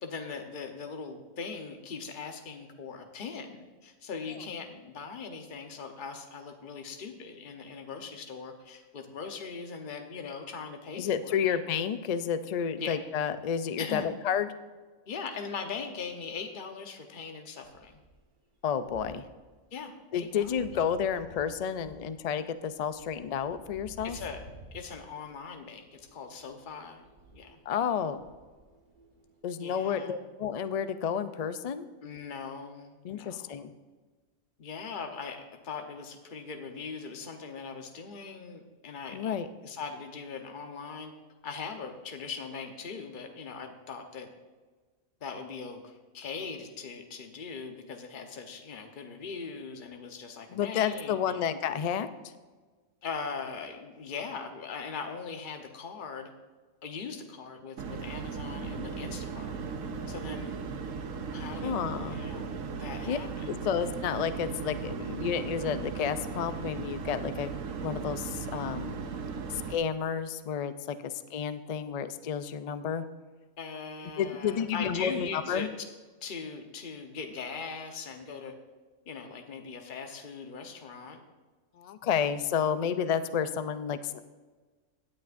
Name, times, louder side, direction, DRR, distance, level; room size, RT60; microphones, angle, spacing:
voice 1, 0.0-11.6 12.8-13.0 13.8-14.1 15.1-18.0 19.7-20.6 24.0-24.4 24.7-27.0 27.3-27.6 29.6-30.2 32.0-33.7 34.6-39.4 39.6-41.1 41.4-44.3 45.2-51.5 53.0-56.3 56.8-59.6 60.1-60.6 61.3-61.8 62.1-63.7 73.6-75.7 76.2-78.5 79.1-81.2, left 5 dB, 45° left, 4 dB, 1.1 m, -40 dB
voice 2, 11.0-14.5 18.6-19.2 20.1-24.2 27.7-28.2 29.4-31.9 33.0-33.7 39.1-39.5 50.5-52.1 61.6-62.2 63.1-63.2 63.5-67.5 67.8-69.0 69.5-73.0 74.2-75.7 81.8-84.2, left 7 dB, 85° left, 11 dB, 0.3 m, -31 dB
sound 1, 17.6-18.4 18.8-19.6 20.0-29.4, right 1 dB, 40° right, 1.5 m, -54 dB
sound 2, 57.8-69.8, right 5 dB, 90° right, 1.2 m, -37 dB
17.0 x 9.5 x 2.6 m, 1.4 s
omnidirectional pair, 1.3 m